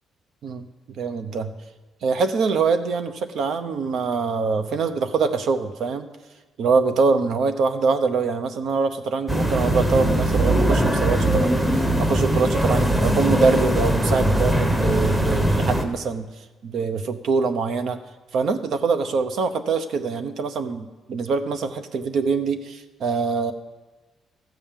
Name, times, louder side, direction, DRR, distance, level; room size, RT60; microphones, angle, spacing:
voice 1, 0.4-1.5 2.0-6.1 6.6-16.3 16.6-18.0 18.3-23.5, right 4 dB, 65° right, 10 dB, 0.8 m, -24 dB
sound 1, 9.3-15.8, right 1 dB, 10° right, 1.0 m, -21 dB
14.5 x 5.3 x 7.4 m, 1.2 s
cardioid pair, 140°, 0 cm